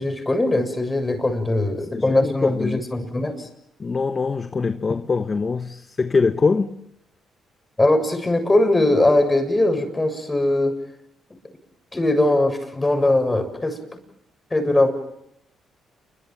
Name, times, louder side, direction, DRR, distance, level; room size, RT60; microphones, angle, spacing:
voice 1, 0.0-3.5 7.8-10.7 11.9-13.8 14.5-14.9, left 2 dB, 15° left, 7.2 m, -20 dB
voice 2, 1.5-2.8 3.8-6.8, left 4 dB, 35° left, 1.3 m, -23 dB
29.0 x 24.0 x 7.4 m
cardioid pair, 90°, 0 cm